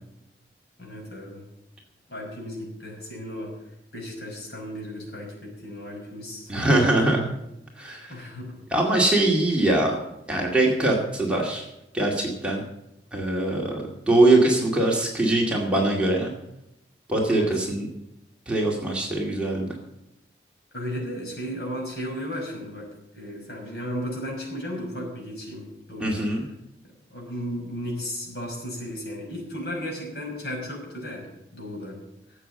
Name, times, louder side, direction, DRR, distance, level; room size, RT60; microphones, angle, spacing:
voice 1, 0.8-1.4 2.1-3.5 3.9-6.5 8.1-8.5 17.3-17.5 20.7-22.9 23.1-26.2 27.1-31.3 31.5-32.0, equal, 65° left, -1 dB, 5.9 m, -34 dB
voice 2, 6.5-7.3 7.8-8.3 8.7-9.9 10.3-11.7 11.9-12.6 13.1-16.3 17.1-17.9 18.5-19.7 26.0-26.4, right 2 dB, 5° right, -2 dB, 2.2 m, -22 dB
13.0 x 8.1 x 8.5 m, 0.86 s
head